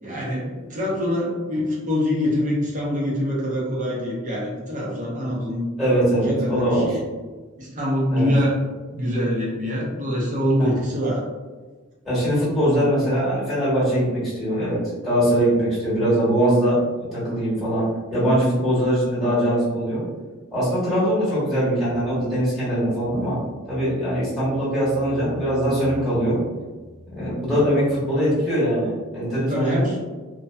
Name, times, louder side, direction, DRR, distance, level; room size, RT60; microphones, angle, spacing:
voice 1, 0.0-5.7 5.9-7.0 7.6-8.6 8.9-11.2 29.5-30.0, equal, 35° right, -4 dB, 0.6 m, -24 dB
voice 2, 5.8-6.9 8.1-8.3 10.6-10.7 12.0-17.8 18.1-20.0 20.5-23.4 23.7-26.4 27.1-30.0, equal, ahead, -11 dB, 1.1 m, -22 dB
2.6 x 2.2 x 2.2 m, 1.3 s
head